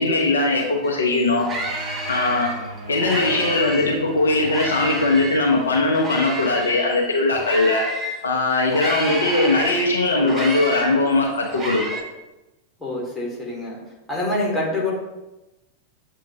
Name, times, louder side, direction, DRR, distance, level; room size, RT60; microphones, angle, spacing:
voice 1, 0.0-1.5 2.1-2.5 2.9-7.9 8.2-11.8, left 2 dB, 70° left, 0 dB, 0.6 m, -20 dB
sound 1, 0.8-4.0 4.4-8.2 8.7-12.0, right 2 dB, 20° right, 0.6 m, -30 dB
sound 2, 1.6-6.9, right 1 dB, 85° right, 0.6 m, -39 dB
voice 2, 12.8-13.8 14.1-14.9, left 2 dB, 5° left, -4 dB, 1.5 m, -25 dB
7.0 x 2.7 x 2.8 m, 1.0 s
figure-of-eight pair, 90°, 0 cm